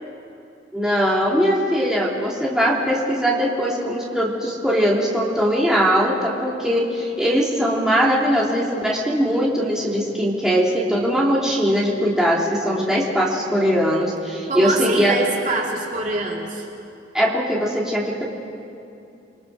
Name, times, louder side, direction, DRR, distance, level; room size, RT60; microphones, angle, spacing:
voice 1, 0.7-15.1 17.1-18.2, equal, 5° right, -5 dB, 3.1 m, -20 dB
voice 2, 14.5-16.7, right 2 dB, 45° right, -1 dB, 2.7 m, -25 dB
28.5 x 23.0 x 6.6 m, 2.7 s
head